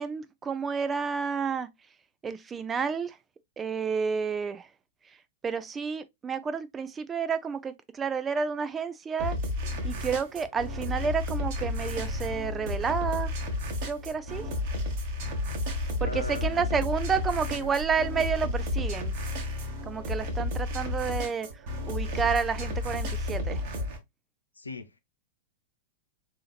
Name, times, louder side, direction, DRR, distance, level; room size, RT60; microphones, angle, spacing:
voice 1, 0.0-1.7 2.2-3.2 3.6-4.7 5.4-9.4 9.8-13.3 13.8-14.4 16.0-19.1 19.8-21.5 21.9-23.6, right 6 dB, 20° right, 0.4 m, -30 dB
sound 1, 9.2-24.0, left 2 dB, 50° right, 1.1 m, -32 dB
sound 2, 11.5-18.9, left 2 dB, 85° right, 0.6 m, -39 dB
voice 2, 16.0-16.8 17.6-17.7 24.6-25.0, left 3 dB, 85° left, 0.5 m, -39 dB
3.7 x 2.8 x 2.4 m
figure-of-eight pair, 100°, 0 cm